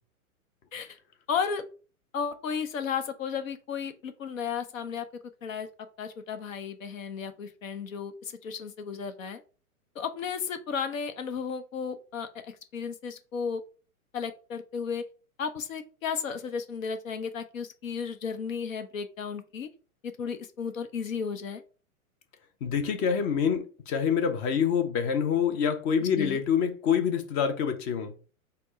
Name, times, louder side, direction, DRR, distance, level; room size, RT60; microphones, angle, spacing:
voice 1, 1.3-1.6 2.1-5.1 5.4-5.7 6.0-9.4 10.0-13.6 14.1-15.0 15.4-19.7 20.0-21.6 26.0-26.4, left 6 dB, 65° left, 0.7 m, -34 dB
voice 2, 22.6-28.1, left 7 dB, 20° left, 0.4 m, -26 dB
4.2 x 2.1 x 4.1 m
figure-of-eight pair, 105°, 43 cm